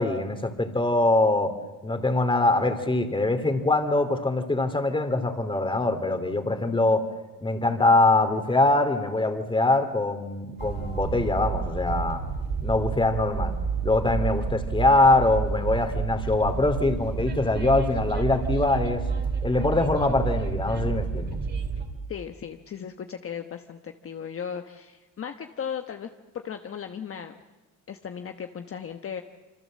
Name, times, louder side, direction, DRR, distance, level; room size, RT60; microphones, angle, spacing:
voice 1, 0.0-1.5 1.8-7.0 7.4-12.2 12.6-13.5 13.8-19.0 19.4-21.4, left 2 dB, 15° left, 8 dB, 2.7 m, -23 dB
Train, 10.6-21.8, right 5 dB, 30° right, 3.2 m, -30 dB
voice 2, 22.1-26.1 26.3-27.4 27.9-29.2, left 8 dB, 45° left, 6 dB, 1.2 m, -36 dB
27.0 x 26.0 x 7.6 m, 1.2 s
cardioid pair, 130°, 32 cm